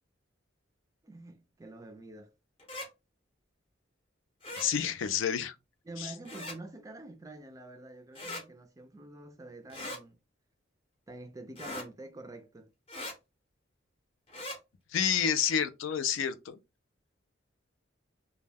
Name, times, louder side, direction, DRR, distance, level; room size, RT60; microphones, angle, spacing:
voice 1, 1.0-2.3 5.9-10.2 11.1-12.7, right 2 dB, 15° right, 0.3 m, -47 dB
sound 1, 2.6-2.9 4.4-4.7 6.3-6.6 8.2-8.4 9.7-10.0 11.6-11.9 12.9-13.2 14.3-14.6, left 1 dB, 30° left, 0.7 m, -40 dB
voice 2, 4.6-5.6 6.0-6.1 14.9-16.5, left 8 dB, 80° left, 0.4 m, -29 dB
2.2 x 2.1 x 3.3 m
head